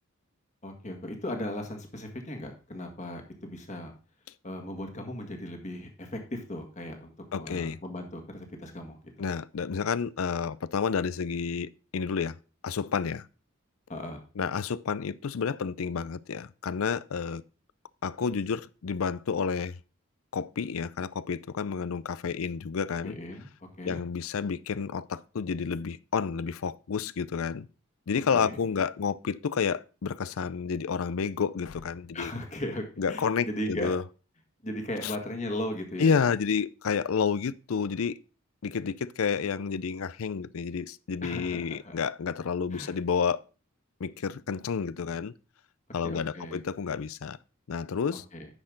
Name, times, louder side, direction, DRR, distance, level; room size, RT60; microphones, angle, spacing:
voice 1, 0.6-3.9 4.4-9.0 13.9-14.2 23.0-23.5 23.8-24.0 28.3-28.6 32.1-33.9 34.6-36.2 41.2-42.0 42.7-43.0 46.0-46.6 48.1-48.5, left 1 dB, 35° left, 1.8 m, -37 dB
voice 2, 7.3-7.8 9.2-12.4 12.6-13.3 14.4-17.4 18.0-19.8 20.3-23.2 23.8-27.7 28.1-32.3 33.0-34.0 35.0-35.1 36.0-38.2 38.6-43.4 44.0-45.3 45.9-47.4 47.7-48.2, left 6 dB, 75° left, 0.5 m, -30 dB
9.8 x 6.5 x 3.9 m
head